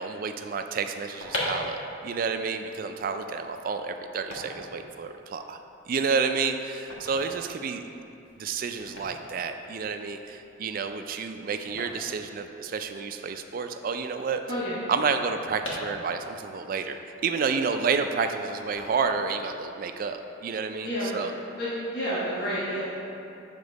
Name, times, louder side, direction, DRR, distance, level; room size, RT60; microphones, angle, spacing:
voice 1, 0.0-5.6 5.9-7.8 8.4-14.4 14.9-21.3, right 5 dB, 45° right, 7 dB, 0.3 m, -30 dB
sound 1, 1.2-13.1 13.3-13.4 13.6-16.5 16.9-17.9 18.5-19.5 19.8-20.1, left 1 dB, 80° left, 1.3 m, -40 dB
voice 2, 21.6-22.8, equal, 50° left, -10 dB, 1.2 m, -29 dB
6.9 x 3.7 x 5.2 m, 2.8 s
head